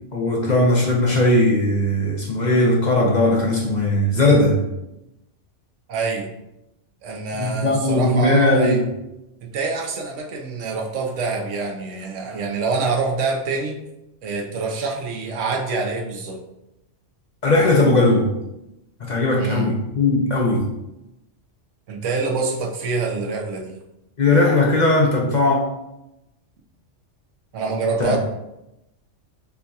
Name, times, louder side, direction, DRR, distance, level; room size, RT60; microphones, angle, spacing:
voice 1, 0.1-4.6 7.4-8.8 17.4-18.3 19.1-20.6 24.2-25.6 28.0-28.2, left 2 dB, 45° left, -2 dB, 0.7 m, -18 dB
voice 2, 5.9-6.3 7.0-8.8 9.4-13.8 14.2-16.4 19.4-19.7 21.9-23.8 27.5-28.2, right 4 dB, 80° right, 1 dB, 1.1 m, -26 dB
6.8 x 2.7 x 2.3 m, 0.90 s
omnidirectional pair, 1.3 m